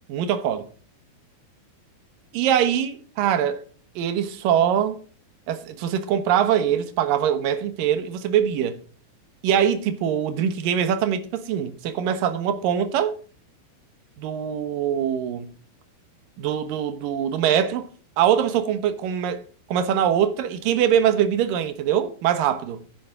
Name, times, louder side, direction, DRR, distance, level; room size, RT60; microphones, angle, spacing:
voice 1, 0.1-0.6 2.3-3.6 4.0-5.0 5.5-8.8 9.4-13.2 14.2-15.5 16.4-17.9 18.2-19.4 19.7-22.8, right 9 dB, 65° right, 2.4 m, -23 dB
13.5 x 10.5 x 3.7 m
omnidirectional pair, 5.2 m